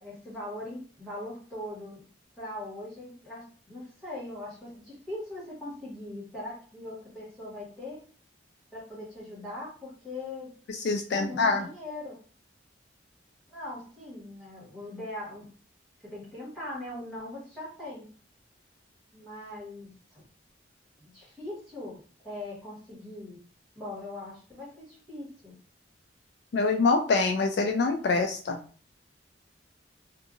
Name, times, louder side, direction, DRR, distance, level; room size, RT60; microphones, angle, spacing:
voice 1, 0.0-2.0 2.4-8.0 8.7-10.5 11.1-12.2 13.5-15.5 16.0-18.1 19.1-20.2 21.0-23.4 23.7-25.5, left 1 dB, ahead, -9 dB, 1.5 m, -40 dB
voice 2, 10.7-11.6 26.5-28.6, left 4 dB, 60° left, 5 dB, 0.3 m, -25 dB
2.7 x 2.6 x 2.5 m, 0.41 s
head